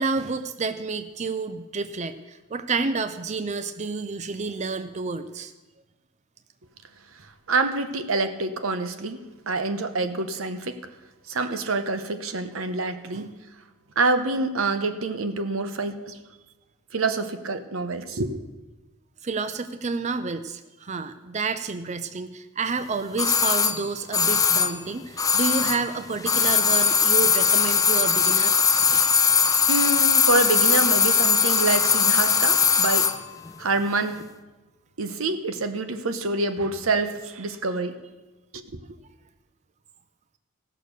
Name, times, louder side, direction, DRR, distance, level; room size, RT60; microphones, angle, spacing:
voice 1, 0.0-5.5 13.1-13.3 19.2-28.6, right 4 dB, 35° right, 10 dB, 0.5 m, -29 dB
voice 2, 7.5-9.2 9.5-10.8 11.3-13.3 14.0-16.2 16.9-18.4 28.8-29.1 29.7-33.1 33.6-34.2 35.0-38.0 38.5-38.6, right 3 dB, 90° right, 10 dB, 0.9 m, -26 dB
sound 1, 23.2-25.9 26.2-33.2 33.5-33.6, left 6 dB, 15° left, 0.5 m, -20 dB
16.5 x 6.6 x 6.6 m, 1.1 s
head